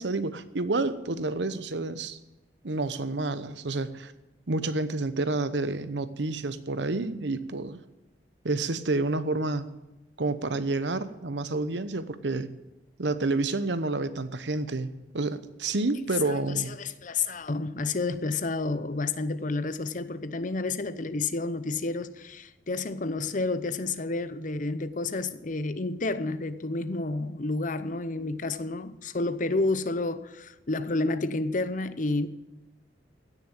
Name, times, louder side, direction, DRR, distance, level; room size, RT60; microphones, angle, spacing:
voice 1, 0.0-2.2 2.6-4.1 4.5-7.8 8.4-9.7 10.2-12.6 13.0-16.8, right 2 dB, 75° right, 0.9 m, -29 dB
voice 2, 16.2-32.3, left 3 dB, 45° left, 0.8 m, -30 dB
16.5 x 7.0 x 8.8 m
head